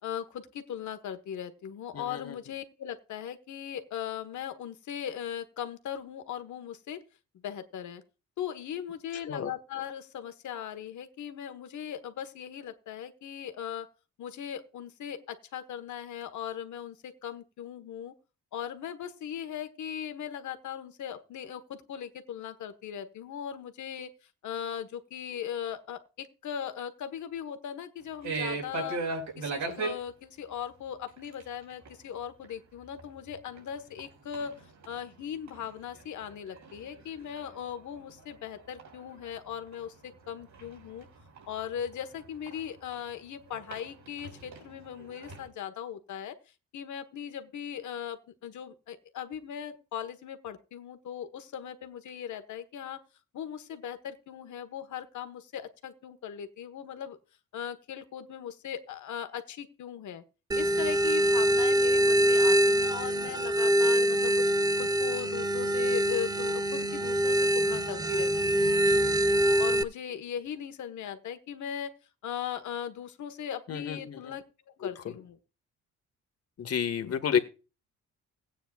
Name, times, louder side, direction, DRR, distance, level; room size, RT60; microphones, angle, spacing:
voice 1, 0.0-7.0 7.4-8.0 8.4-13.9 14.2-18.1 18.5-24.1 24.4-29.0 29.4-34.5 34.9-41.1 41.5-46.4 46.7-53.0 53.3-57.2 57.5-60.2 60.5-64.4 64.8-68.7 69.6-71.9 72.2-74.4 74.8-75.4, left 9 dB, 70° left, 8 dB, 1.5 m, -39 dB
voice 2, 1.9-2.4 9.3-9.5 73.7-74.3 75.0-75.2 76.6-77.4, left 8 dB, 55° left, 8 dB, 1.8 m, -30 dB
sound 1, 28.2-30.0 31.1-31.4 31.7-31.9 32.4-32.5 33.0-33.1 33.4-34.1 34.3-35.7 35.9-39.3 39.7-43.0 43.5-45.5, right 3 dB, 70° right, 5.1 m, -38 dB
sound 2, 60.5-69.8, right 1 dB, 15° right, 0.8 m, -24 dB
16.5 x 9.2 x 2.5 m, 0.31 s
cardioid pair, 90°, 30 cm